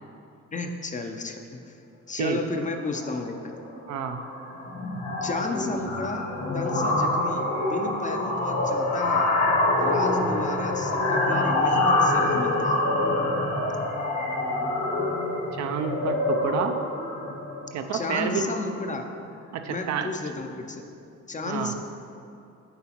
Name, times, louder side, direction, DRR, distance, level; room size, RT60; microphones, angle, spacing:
voice 1, 0.5-1.8 2.1-3.5 5.2-6.3 6.5-9.3 9.8-12.8 17.9-19.1 19.7-20.9 21.3-21.7, left 3 dB, 25° left, 4 dB, 0.5 m, -33 dB
sound 1, 2.8-3.1 3.4-3.7 3.9-18.8, left 2 dB, 65° left, 1.3 m, -26 dB
voice 2, 3.9-4.2 15.5-16.8 17.7-18.5 19.5-20.1 21.4-21.7, right 7 dB, 65° right, 7 dB, 0.5 m, -29 dB
8.0 x 4.7 x 2.9 m, 2.6 s
cardioid pair, 90°, 30 cm